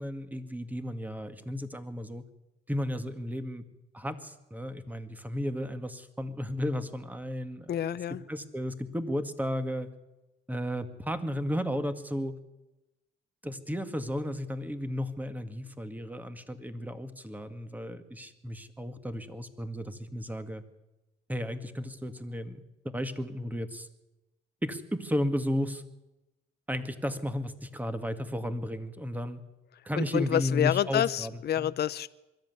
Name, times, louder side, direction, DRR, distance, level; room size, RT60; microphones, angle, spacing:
voice 1, 0.0-2.2 2.7-3.6 3.9-7.7 8.3-9.9 10.5-12.3 13.4-20.6 21.3-22.6 22.9-23.9 24.6-25.8 26.7-29.4 29.9-31.3 31.6-31.7, equal, 10° right, 9 dB, 2.0 m, -34 dB
voice 2, 7.7-8.2 29.9-32.1, left 11 dB, 55° left, 15 dB, 0.6 m, -28 dB
22.5 x 13.5 x 9.6 m, 1.0 s
cardioid pair, 90°, 20 cm